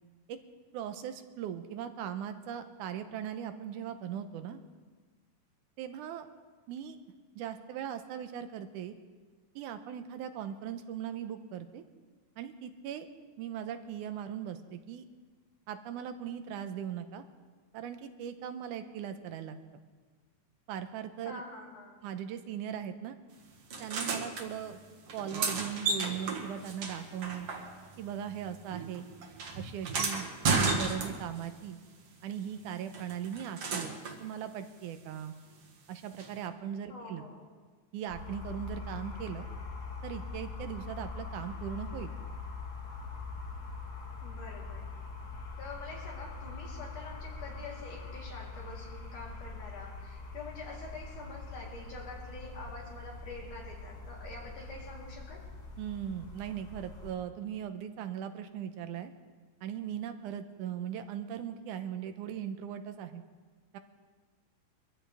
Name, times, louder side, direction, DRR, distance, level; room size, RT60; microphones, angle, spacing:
voice 1, 0.7-4.6 5.8-6.3 6.7-7.0 7.4-8.9 9.6-11.8 12.4-13.1 13.4-15.1 15.7-17.2 17.7-19.6 20.7-21.4 22.0-23.2 23.8-24.8 25.1-27.5 28.0-29.1 29.6-31.8 32.2-35.3 35.9-37.2 37.9-39.5 40.0-42.1 55.8-59.1 59.6-63.2 63.7-63.8, right 9 dB, 90° right, 9 dB, 2.4 m, -39 dB
voice 2, 21.3-22.0 36.9-37.5 44.2-44.9 45.6-55.4, left 2 dB, 80° left, -4 dB, 5.0 m, -46 dB
sound 1, 23.7-24.5 25.1-28.0 28.3-31.5 32.9-34.2 36.2-36.3, right 4 dB, 55° right, 2.3 m, -33 dB
sound 2, 38.1-57.1, left 4 dB, 35° left, 1.9 m, -43 dB
23.5 x 14.5 x 3.5 m, 1.4 s
omnidirectional pair, 3.5 m